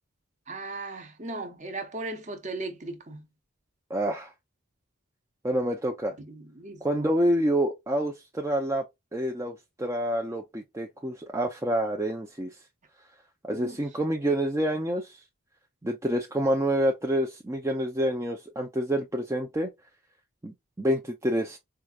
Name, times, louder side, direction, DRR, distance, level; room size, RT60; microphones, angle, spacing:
voice 1, 0.5-3.2 6.2-7.1 13.5-13.8, right 2 dB, 35° right, 0.8 m, -37 dB
voice 2, 3.9-4.3 5.4-6.1 6.8-8.8 9.1-12.5 13.4-15.2 15.8-19.7 20.4-21.6, right 1 dB, 15° right, 0.4 m, -27 dB
4.6 x 2.4 x 2.4 m
head